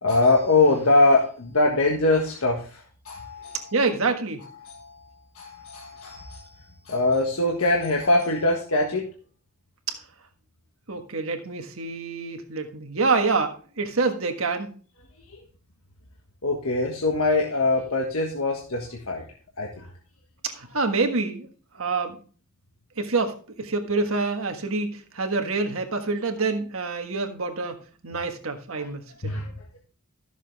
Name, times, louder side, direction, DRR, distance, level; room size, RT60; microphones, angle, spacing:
voice 1, 0.0-3.7 4.6-9.1 15.3-15.4 16.4-19.2 19.6-19.9 28.8-28.9 29.2-29.5, left 2 dB, 70° left, 0 dB, 1.5 m, -23 dB
voice 2, 3.7-4.5 10.9-14.7 20.4-21.5 21.7-22.2 23.0-29.4, right 3 dB, 65° right, 5 dB, 1.6 m, -27 dB
13.5 x 7.2 x 3.5 m, 0.40 s
head